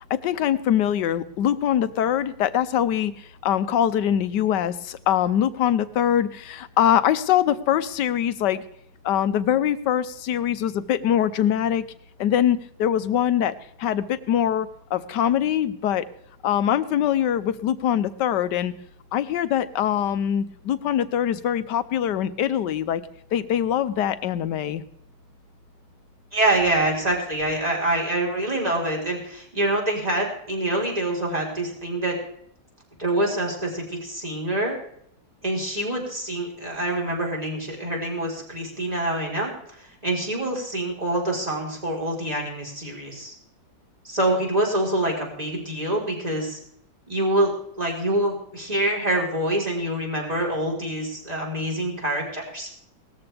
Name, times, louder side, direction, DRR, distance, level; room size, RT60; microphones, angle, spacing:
voice 1, 0.1-8.6 9.0-11.8 12.2-16.1 16.4-18.7 19.1-23.0 23.3-24.8, left 10 dB, 75° left, 14 dB, 1.4 m, -23 dB
voice 2, 26.3-32.2 33.0-34.8 35.4-39.5 39.8-43.3 44.0-46.6 47.1-52.7, right 1 dB, 20° right, -2 dB, 4.2 m, -26 dB
19.0 x 14.0 x 3.4 m, 0.70 s
omnidirectional pair, 1.9 m